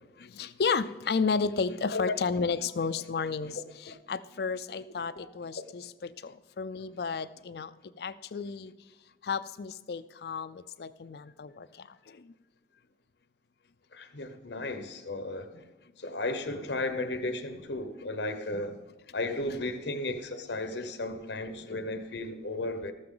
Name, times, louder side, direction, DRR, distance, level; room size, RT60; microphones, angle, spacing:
voice 1, 0.2-8.7 9.2-12.3, left 5 dB, 65° left, 16 dB, 0.4 m, -33 dB
voice 2, 13.9-15.6 16.0-18.8 19.1-22.9, left 2 dB, 85° left, 9 dB, 1.0 m, -34 dB
13.5 x 13.5 x 3.8 m, 1.2 s
head